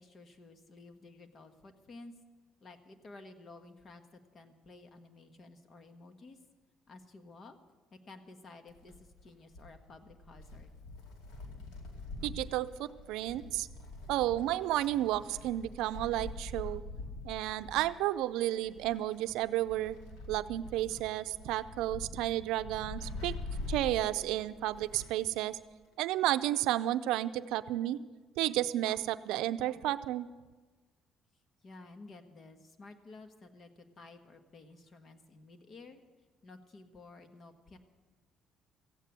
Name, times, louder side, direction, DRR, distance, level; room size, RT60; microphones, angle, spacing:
voice 1, 0.0-2.1 2.6-4.0 4.3-6.4 6.9-7.5 7.9-8.9 9.2-10.7 31.6-36.0 36.4-37.8, left 3 dB, 45° left, 7 dB, 1.5 m, -53 dB
Wind, 8.7-25.3 25.6-25.7 26.7-26.8, left 2 dB, 90° left, 2.4 m, -45 dB
voice 2, 12.2-13.7 14.1-16.8 17.2-20.0 20.3-23.4 23.7-25.6 26.0-28.0 28.4-30.3, right 14 dB, 85° right, 12 dB, 0.5 m, -32 dB
15.0 x 9.2 x 8.0 m, 1.3 s
cardioid pair, 100°, 0 cm